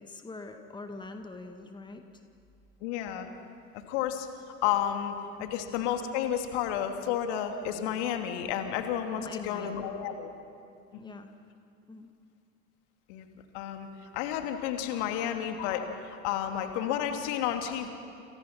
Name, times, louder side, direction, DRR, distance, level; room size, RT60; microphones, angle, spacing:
voice 1, 0.0-2.2 5.4-5.6 9.2-9.9 10.9-11.3 11.9-12.1, left 3 dB, 10° left, 6 dB, 1.9 m, -44 dB
voice 2, 2.8-3.3 3.7-4.3 4.6-10.3 11.1-11.2 13.1-13.3 13.5-13.9 14.1-17.9, left 10 dB, 55° left, 6 dB, 2.7 m, -31 dB
29.0 x 28.0 x 6.1 m, 2.5 s
figure-of-eight pair, 75°, 40 cm